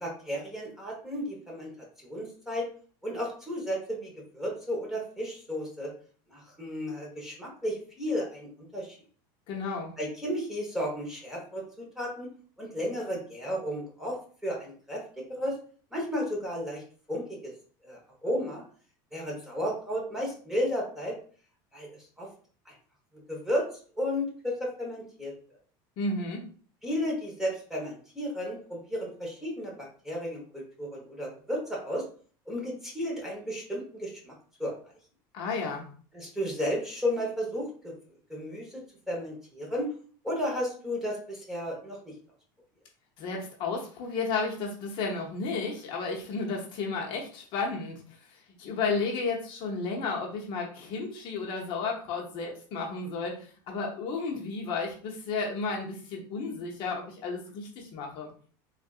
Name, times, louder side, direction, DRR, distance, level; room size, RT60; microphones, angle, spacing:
voice 1, 0.0-1.7 2.0-2.7 3.0-5.9 6.3-9.0 10.0-12.3 12.6-14.2 14.4-15.5 15.9-16.8 17.1-17.5 17.8-18.6 19.1-21.2 21.7-22.3 22.6-22.7 23.3-23.7 24.0-25.3 26.8-32.0 32.5-34.3 34.6-34.8 36.1-37.9 38.3-39.9 40.2-42.1, equal, 5° right, -3 dB, 1.0 m, -33 dB
voice 2, 9.5-9.9 26.0-26.4 35.3-35.9 43.2-58.3, left 4 dB, 50° left, -1 dB, 0.7 m, -33 dB
3.5 x 2.5 x 2.3 m, 0.44 s
supercardioid pair, 145°, 11 cm